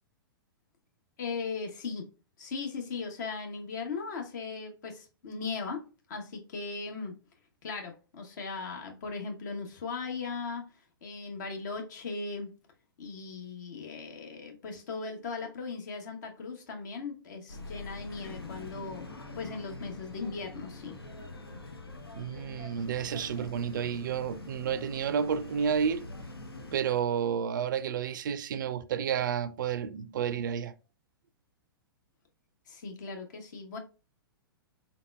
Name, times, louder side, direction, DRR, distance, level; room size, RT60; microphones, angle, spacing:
voice 1, 1.2-2.1 2.4-7.2 7.6-10.7 11.0-12.5 13.0-19.1 19.4-21.0 32.7-33.8, left 4 dB, 50° left, 0.9 m, -38 dB
sound 1, 17.5-26.8, left 3 dB, 85° left, 0.8 m, -44 dB
voice 2, 22.1-26.1 26.7-30.7, right 7 dB, 55° right, 0.4 m, -31 dB
4.0 x 3.9 x 2.2 m
figure-of-eight pair, 110°, 12 cm